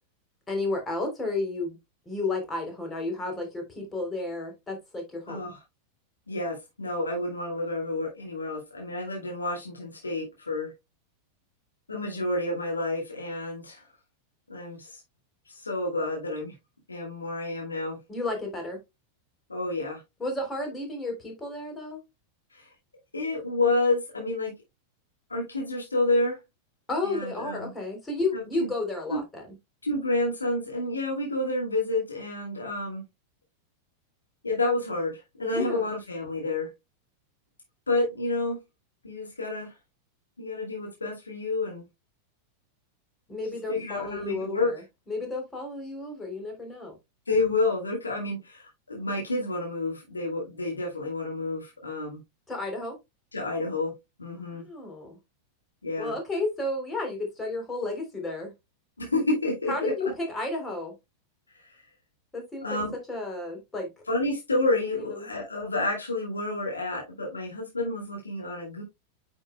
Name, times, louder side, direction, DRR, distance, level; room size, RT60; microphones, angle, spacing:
voice 1, 0.5-1.8 2.0-5.5 18.1-18.8 20.2-22.0 26.9-29.4 35.5-35.9 43.3-44.8 45.1-47.0 52.5-52.9 54.5-55.2 56.0-58.5 59.7-60.9 62.3-62.8 63.1-63.9 64.9-65.3, left 2 dB, 15° left, 3.4 m, -32 dB
voice 2, 5.3-5.6 6.3-10.7 11.9-13.8 14.5-15.0 15.5-16.5 16.9-18.0 19.5-20.0 22.5-22.7 23.1-24.5 25.3-26.4 27.0-27.7 28.3-28.7 29.1-29.2 29.8-33.0 34.4-36.7 37.9-38.6 39.0-39.7 40.4-41.8 43.7-44.7 47.3-52.2 53.3-53.9 54.2-54.6 55.8-56.1 59.0-59.9 61.6-61.7 62.6-62.9 64.1-68.8, left 2 dB, 80° left, 2.3 m, -29 dB
8.7 x 6.3 x 2.2 m
figure-of-eight pair, 90°, 0 cm